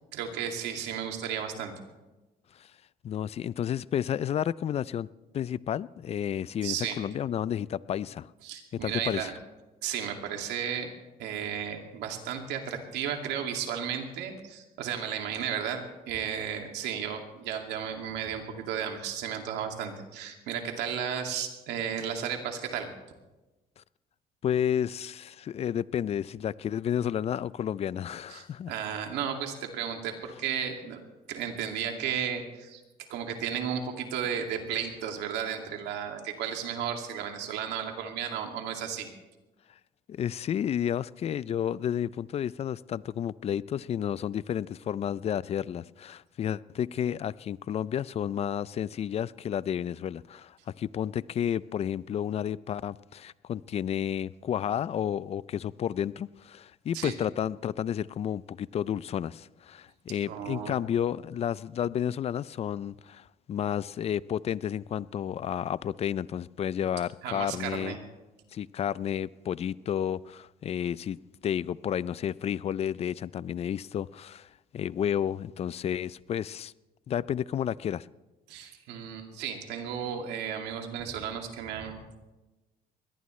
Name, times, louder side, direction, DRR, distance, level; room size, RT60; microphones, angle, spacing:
voice 1, 0.1-1.7 6.6-7.0 8.4-9.3 9.8-10.9 11.2-22.9 28.3-39.1 56.9-57.1 60.3-60.8 67.2-68.1 78.5-82.2, right 8 dB, 85° right, 3 dB, 2.4 m, -34 dB
voice 2, 3.0-5.1 5.3-8.3 8.8-9.3 23.8-23.9 24.4-28.7 40.1-68.0 68.5-74.5 74.7-76.7 77.1-78.1, left 9 dB, 40° left, 20 dB, 0.4 m, -31 dB
22.5 x 18.0 x 3.2 m, 1.1 s
cardioid pair, 110°, 17 cm